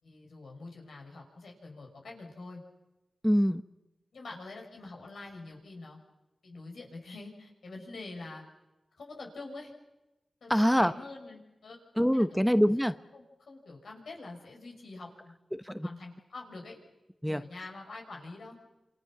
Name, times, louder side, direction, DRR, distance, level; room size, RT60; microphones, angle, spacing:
voice 1, 0.0-2.6 4.1-6.0 6.4-8.4 9.0-9.7 10.4-11.8 12.3-12.9 13.1-15.3 15.8-16.8 17.2-18.6, left 3 dB, 85° left, 1 dB, 5.9 m, -46 dB
voice 2, 3.2-3.6 10.5-10.9 12.0-12.9 15.5-15.9 17.2-17.4, equal, ahead, 10 dB, 1.0 m, -25 dB
27.5 x 25.5 x 6.1 m, 1.0 s
cardioid pair, 50°, 0 cm